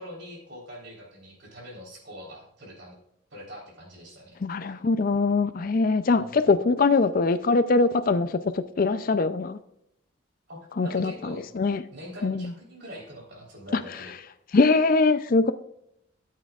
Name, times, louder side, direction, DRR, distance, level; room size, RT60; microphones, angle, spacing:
voice 1, 0.0-3.0 3.3-4.4 6.1-6.3 10.5-11.5 11.9-14.2, equal, 55° right, -1 dB, 3.8 m, -43 dB
voice 2, 4.4-8.4 8.8-9.6 10.8-11.8 12.2-12.5 13.7-13.8 14.5-15.5, left 3 dB, 40° left, 12 dB, 0.4 m, -22 dB
13.5 x 8.5 x 2.4 m, 0.78 s
head